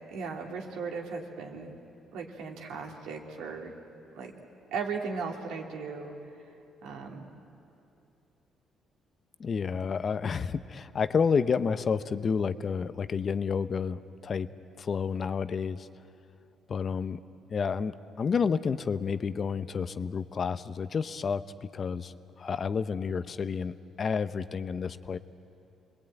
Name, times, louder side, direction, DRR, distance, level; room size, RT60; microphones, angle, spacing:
voice 1, 0.1-1.7 2.1-3.7 4.1-4.3 4.7-6.1 6.8-7.3, right 5 dB, 90° right, 1 dB, 2.7 m, -37 dB
voice 2, 9.4-14.5 14.8-15.9 16.7-17.2 17.5-25.2, left 6 dB, 40° left, 13 dB, 0.7 m, -30 dB
28.0 x 21.0 x 9.1 m, 2.7 s
cardioid pair, 110°, 0 cm